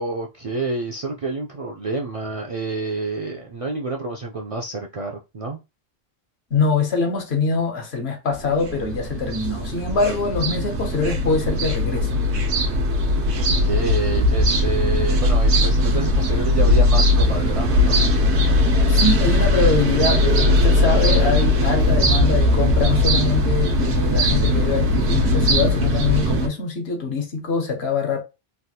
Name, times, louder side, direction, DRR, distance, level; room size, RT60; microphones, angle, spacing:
voice 1, 0.0-5.6 13.4-18.0, right 3 dB, 55° right, 0.4 m, -28 dB
voice 2, 6.5-12.2 18.9-28.2, left 4 dB, 75° left, 1.1 m, -23 dB
sound 1, 8.3-26.5, left 1 dB, 85° right, 1.0 m, -19 dB
3.3 x 2.3 x 2.7 m
omnidirectional pair, 1.1 m